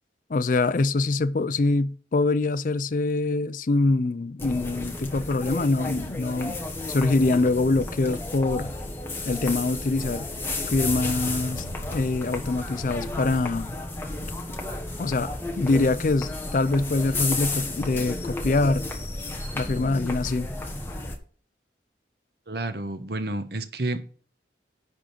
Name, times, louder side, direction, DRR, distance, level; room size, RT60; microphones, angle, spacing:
voice 1, 0.3-6.6 6.9-8.7 9.3-10.3 10.7-11.6 11.9-13.7 15.0-18.9 19.6-20.5, left 3 dB, 45° left, 0.4 m, -24 dB
sound 1, 4.4-21.1, left 2 dB, 10° left, 1.3 m, -32 dB
sound 2, 10.7-14.3, left 1 dB, 70° left, 1.4 m, -41 dB
voice 2, 22.5-24.0, right 2 dB, 55° right, 1.1 m, -30 dB
10.5 x 3.7 x 6.8 m
head